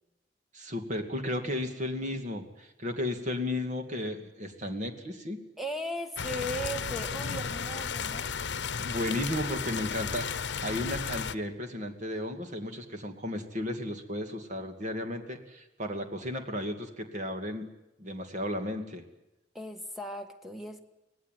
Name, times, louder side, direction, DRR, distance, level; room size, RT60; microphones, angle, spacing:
voice 1, 0.5-5.4 8.8-10.3 10.6-17.7 18.0-19.0, left 1 dB, 45° right, 5 dB, 2.5 m, -34 dB
voice 2, 5.6-8.3 19.5-20.8, equal, ahead, 6 dB, 1.7 m, -37 dB
sound 1, 6.2-11.4, left 6 dB, 90° left, 0.8 m, -34 dB
24.5 x 18.5 x 9.3 m, 0.95 s
head